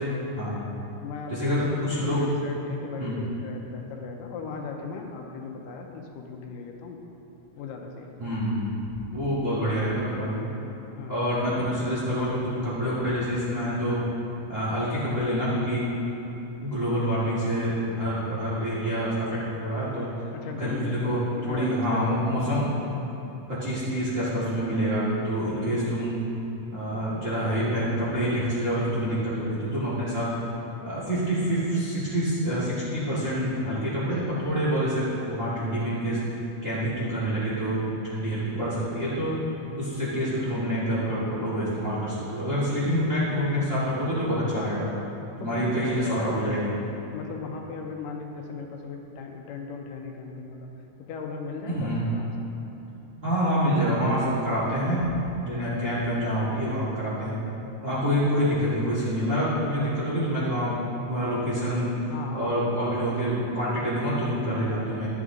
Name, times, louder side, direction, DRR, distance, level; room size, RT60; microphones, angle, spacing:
voice 1, 0.5-1.6 2.0-7.0 7.6-8.2 11.0-11.4 20.3-22.0 38.5-38.8 44.6-44.7 45.4-46.6 47.1-50.7 51.1-52.5 55.7-55.8 62.1-62.5 63.0-63.1, left 5 dB, 85° left, 2 dB, 2.3 m, -38 dB
voice 2, 1.3-2.2 3.0-3.2 8.2-8.6 9.1-10.5 11.1-14.0 14.5-15.9 16.6-19.1 19.6-20.1 20.5-21.2 21.5-22.8 23.5-26.1 26.7-30.2 30.8-36.2 36.6-39.4 39.8-44.8 45.4-46.7 51.7-52.0 53.2-55.1 55.5-57.4 57.8-60.8 61.1-62.0 62.3-65.1, equal, 30° right, -9 dB, 1.6 m, -27 dB
11.5 x 8.0 x 3.7 m, 3.0 s
omnidirectional pair, 3.9 m